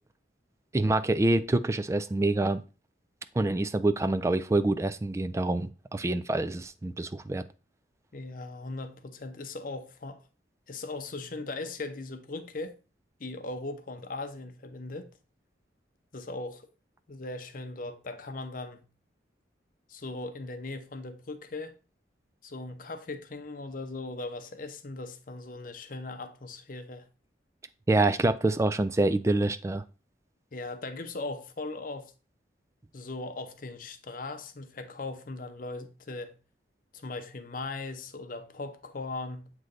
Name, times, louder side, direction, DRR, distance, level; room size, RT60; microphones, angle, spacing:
voice 1, 0.7-2.6 3.4-7.4 27.9-29.8, right 2 dB, 15° right, 0.3 m, -26 dB
voice 2, 8.1-10.2 10.7-12.8 13.2-15.2 16.1-16.7 17.1-18.9 19.9-21.8 22.4-27.1 30.5-32.1 32.9-36.4 36.9-39.5, left 2 dB, 50° left, 0.7 m, -39 dB
7.6 x 3.2 x 3.9 m
head